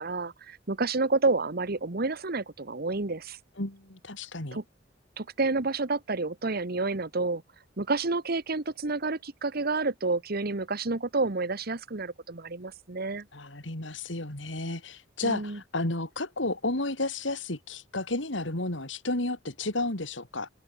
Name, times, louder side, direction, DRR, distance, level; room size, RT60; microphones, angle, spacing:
voice 1, 0.0-3.4 4.5-4.6 5.2-7.4 7.8-13.3 15.2-15.6, right 3 dB, 55° right, 1.3 m, -29 dB
voice 2, 3.6-4.6 13.3-20.5, left 2 dB, 75° left, 4.0 m, -32 dB
open air
head